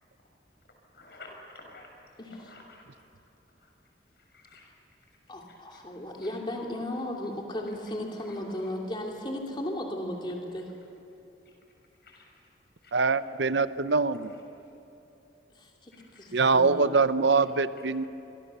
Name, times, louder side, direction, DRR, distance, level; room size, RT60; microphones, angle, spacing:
voice 1, 0.9-1.9 2.4-2.8 4.3-4.7 12.0-12.3 12.8-12.9 16.1-16.3, left 2 dB, 60° left, 1 dB, 6.5 m, -49 dB
voice 2, 2.2-2.5 5.3-10.7 15.6-15.9 16.2-17.0, left 1 dB, 25° left, 0 dB, 2.7 m, -35 dB
voice 3, 12.9-14.3 16.3-18.0, right 4 dB, 85° right, 13 dB, 0.8 m, -24 dB
28.0 x 23.5 x 6.9 m, 2.9 s
head